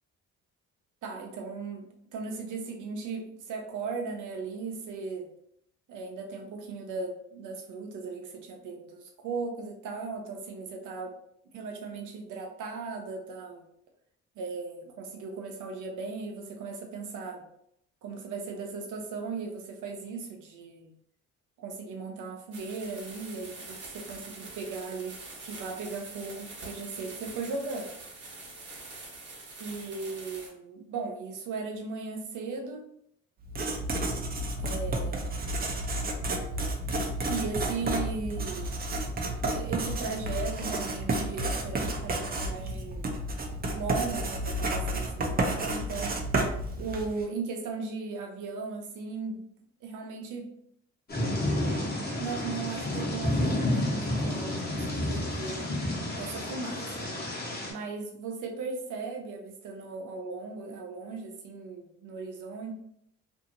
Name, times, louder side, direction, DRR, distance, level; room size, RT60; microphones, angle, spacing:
voice 1, 1.0-5.3 5.9-11.2 11.5-13.6 14.4-17.5 18.0-20.9 21.6-27.9 29.6-32.8 34.6-35.5 37.0-38.8 39.5-43.2 43.7-46.2 46.8-49.5 49.8-50.5 52.2-55.7 56.1-56.9 57.7-62.7, right 4 dB, 80° right, 2 dB, 0.7 m, -37 dB
sound 1, 22.5-30.5, right 3 dB, 50° right, 1.0 m, -45 dB
Writing, 33.4-47.2, right 1 dB, 30° right, 0.5 m, -31 dB
Thunder / Rain, 51.1-57.7, left 1 dB, 30° left, 1.0 m, -30 dB
2.7 x 2.7 x 2.6 m, 0.73 s
cardioid pair, 90°, 30 cm